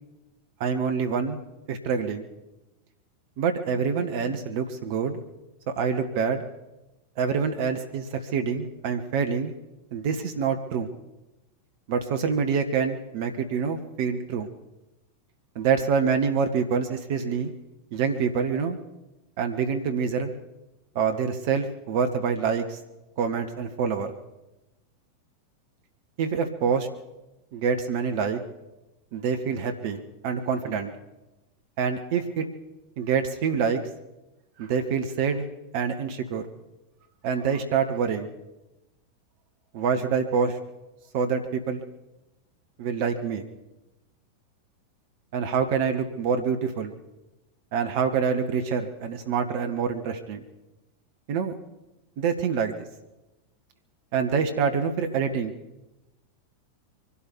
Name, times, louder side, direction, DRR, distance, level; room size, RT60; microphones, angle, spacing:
voice 1, 0.6-1.4 1.7-2.3 3.4-5.2 5.7-6.4 7.2-9.5 9.9-10.9 11.9-14.5 15.5-17.5 17.9-18.8 19.4-20.3 20.9-22.8 23.2-24.1 26.2-26.9 27.5-28.4 29.1-30.9 31.8-32.5 33.0-33.8 34.6-35.5 35.7-36.5 37.2-38.3 39.7-40.6 41.1-41.8 42.8-43.4 45.3-46.9 47.7-50.4 51.3-51.5 52.2-52.8 54.1-55.5, right 6 dB, 50° right, 7 dB, 1.5 m, -26 dB
24.0 x 12.5 x 4.8 m, 1.0 s
figure-of-eight pair, 90°, 0 cm